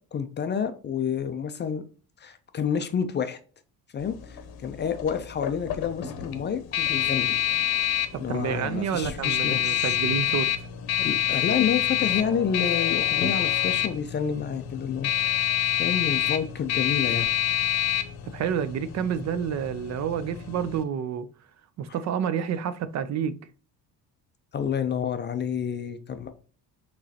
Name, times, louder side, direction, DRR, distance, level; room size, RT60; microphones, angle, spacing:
voice 1, 0.1-1.8 2.2-3.4 3.9-7.4 8.2-10.0 11.0-15.4 15.8-17.3 24.5-26.3, left 7 dB, 30° left, 0.4 m, -29 dB
sound 1, 4.0-20.8, left 11 dB, 70° left, 0.8 m, -27 dB
voice 2, 8.1-10.5 18.2-21.3 21.8-23.4, right 8 dB, 45° right, 0.4 m, -29 dB
6.2 x 3.1 x 2.7 m
cardioid pair, 155°, 38 cm